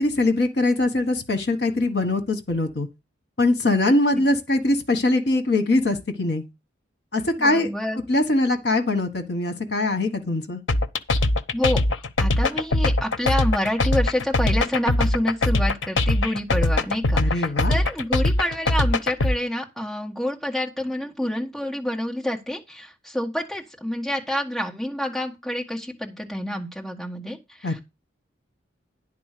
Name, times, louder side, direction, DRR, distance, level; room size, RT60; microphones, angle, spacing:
voice 1, 0.0-2.9 3.4-6.4 7.1-7.7 8.1-10.6 17.2-17.8 27.6-27.8, left 2 dB, 55° left, 1.4 m, -22 dB
voice 2, 7.4-8.0 11.5-27.8, left 1 dB, ahead, 1.7 m, -28 dB
sound 1, 10.7-19.3, left 2 dB, 80° left, 0.7 m, -21 dB
10.5 x 4.0 x 6.7 m
head